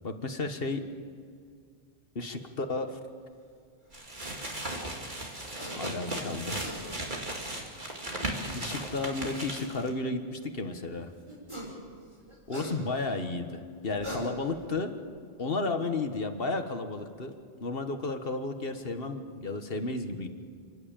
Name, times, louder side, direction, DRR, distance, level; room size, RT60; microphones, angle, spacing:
voice 1, 0.0-0.9 2.1-3.0 5.8-6.9 8.5-11.1 12.5-15.0 15.4-17.3 17.6-20.3, left 3 dB, 55° left, 7 dB, 1.6 m, -33 dB
sound 1, 3.9-9.9, right 1 dB, 45° right, 2.7 m, -36 dB
sound 2, 5.6-5.8 6.3-6.8 8.2-8.3 11.3-11.8 12.1-13.1 13.8-14.7, equal, 25° right, 5.7 m, -40 dB
29.5 x 11.5 x 8.9 m, 2.2 s
omnidirectional pair, 1.2 m